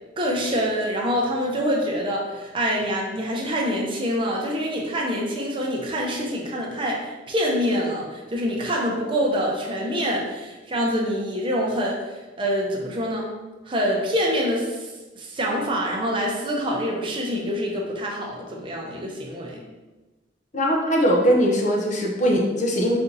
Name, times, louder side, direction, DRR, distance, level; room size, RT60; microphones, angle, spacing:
voice 1, 0.2-7.0 7.3-12.0 12.4-13.3 13.7-14.8 15.2-19.6, equal, 30° right, -2 dB, 0.7 m, -25 dB
voice 2, 20.5-23.0, equal, 40° left, 0 dB, 0.6 m, -20 dB
4.3 x 2.7 x 3.8 m, 1.2 s
head